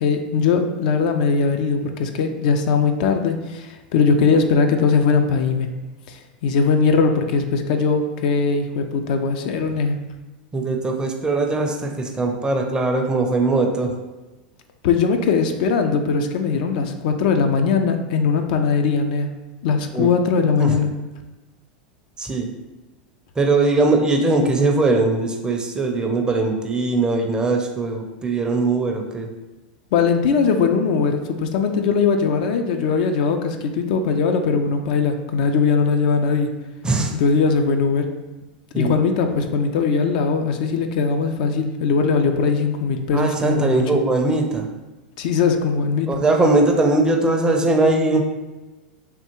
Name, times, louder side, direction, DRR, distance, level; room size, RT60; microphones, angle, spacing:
voice 1, 0.0-5.7 6.1-10.0 14.8-19.3 19.6-20.9 29.9-36.5 37.2-38.1 38.7-43.8 45.2-46.2, left 5 dB, 65° left, 6 dB, 0.3 m, -20 dB
voice 2, 10.5-13.9 19.9-20.1 20.6-20.8 22.2-22.5 23.4-29.3 36.8-37.1 38.7-38.9 43.1-44.7 46.1-48.2, right 3 dB, 15° right, 3 dB, 0.4 m, -20 dB
3.3 x 2.3 x 2.9 m, 1.1 s
hypercardioid pair, 100°, 5 cm